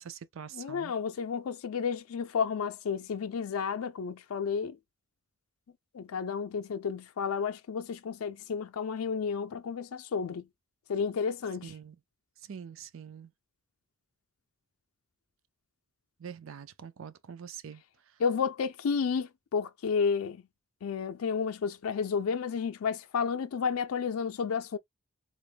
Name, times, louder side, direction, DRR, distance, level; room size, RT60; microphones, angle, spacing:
voice 1, 0.0-0.9 11.6-12.0 12.5-13.3 16.2-17.8, right 7 dB, 70° right, 0.5 m, -44 dB
voice 2, 0.5-4.8 5.9-10.5 10.9-11.7 18.2-20.4 20.8-24.8, left 6 dB, 85° left, 0.4 m, -31 dB
3.9 x 2.1 x 3.3 m
head